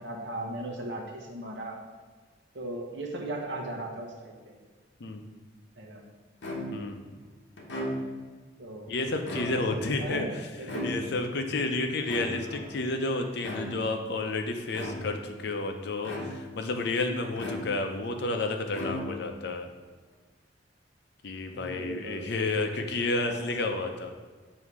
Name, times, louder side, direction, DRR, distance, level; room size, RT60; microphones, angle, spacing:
voice 1, 0.0-1.8 2.5-4.6 5.8-6.0 8.6-8.9 9.4-10.9 12.4-12.8 21.5-22.3 23.2-23.5, right 1 dB, 70° right, 0 dB, 1.0 m, -38 dB
sound 1, 6.4-7.0 7.6-8.3 9.1-9.9 10.7-11.4 12.1-12.7 13.4-14.0 14.7-15.3 16.0-16.6 17.4-18.1 18.7-19.4, equal, 85° left, 0.9 m, -36 dB
voice 2, 6.7-7.0 8.9-10.4 10.8-19.7 21.2-24.1, left 2 dB, 65° left, 5 dB, 0.6 m, -31 dB
7.1 x 2.8 x 4.7 m, 1.4 s
head